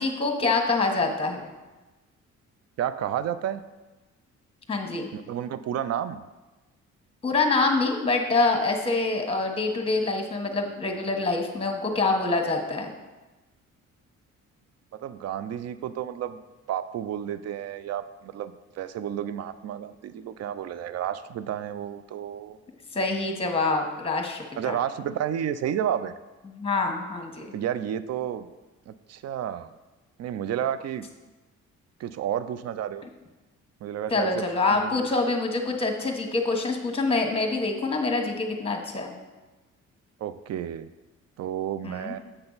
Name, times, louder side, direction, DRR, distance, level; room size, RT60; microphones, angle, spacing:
voice 1, 0.0-1.5 4.7-5.1 7.2-12.9 22.9-24.8 26.6-27.5 34.1-39.1 41.8-42.1, left 3 dB, 20° left, 3 dB, 1.3 m, -26 dB
voice 2, 2.8-3.6 5.1-6.2 14.9-16.4 16.7-22.6 24.6-26.1 27.5-28.5 28.9-29.7 30.2-31.0 32.0-33.1 33.8-34.4 34.7-35.3 40.2-40.9 41.4-42.2, right 10 dB, 55° right, 13 dB, 0.5 m, -31 dB
7.8 x 5.8 x 4.0 m, 1.1 s
cardioid pair, 90°, 30 cm